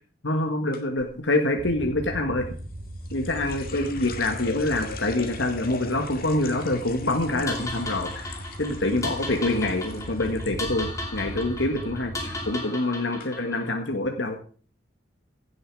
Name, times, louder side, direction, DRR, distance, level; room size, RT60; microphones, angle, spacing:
voice 1, 0.2-2.4 3.1-14.4, left 2 dB, 80° left, 3 dB, 1.8 m, -26 dB
sound 1, 0.7-1.1 2.6-10.5 10.8-11.4 11.8-12.1 12.8-12.9 13.2-13.3, left 4 dB, 50° left, 2.2 m, -41 dB
sound 2, 1.6-12.5, right 1 dB, 45° right, 2.6 m, -38 dB
sound 3, 7.5-13.7, left 2 dB, 15° left, 2.7 m, -36 dB
16.5 x 7.8 x 4.8 m, 0.41 s
head